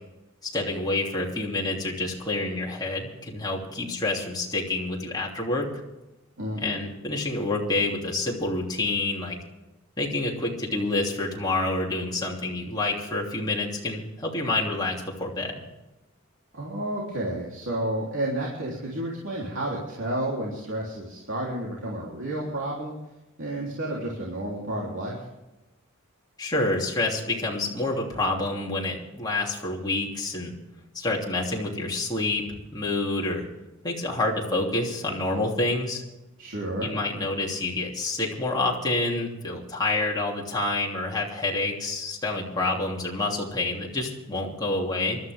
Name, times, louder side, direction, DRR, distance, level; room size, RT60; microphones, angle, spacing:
voice 1, 0.4-5.7 6.6-9.4 10.0-15.6 26.4-30.5 30.9-32.4 32.7-33.4 33.8-36.0 36.8-45.2, left 2 dB, 20° left, -3 dB, 2.9 m, -28 dB
voice 2, 6.4-6.8 16.5-23.0 23.4-25.2 36.4-36.9, right 1 dB, 60° right, -4 dB, 3.5 m, -31 dB
23.5 x 13.0 x 3.6 m, 0.97 s
head